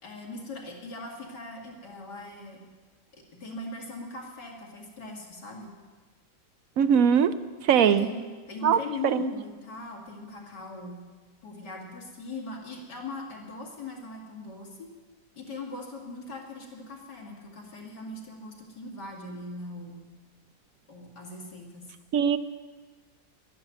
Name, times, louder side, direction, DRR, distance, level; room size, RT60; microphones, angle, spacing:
voice 1, 0.0-2.6 3.1-5.7 7.7-11.0 11.4-14.9 15.4-20.0 20.9-21.9, left 2 dB, 75° left, 1 dB, 3.1 m, -40 dB
voice 2, 6.8-7.4 7.7-8.1 8.6-8.8 9.0-9.3 22.1-22.4, right 8 dB, 65° right, 13 dB, 0.9 m, -21 dB
12.0 x 11.5 x 9.1 m, 1.4 s
omnidirectional pair, 1.9 m